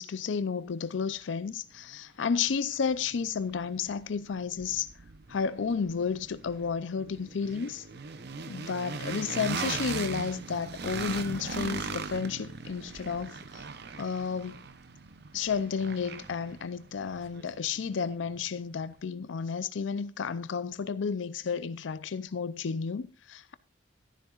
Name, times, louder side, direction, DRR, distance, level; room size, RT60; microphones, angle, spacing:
voice 1, 0.0-4.9 5.3-7.9 8.5-13.6 14.0-14.6 15.3-23.6, left 6 dB, 80° left, 0.5 m, -32 dB
sound 1, 1.9-2.0 2.5-18.4, right 5 dB, 60° right, 0.8 m, -40 dB
12.5 x 11.0 x 2.4 m
head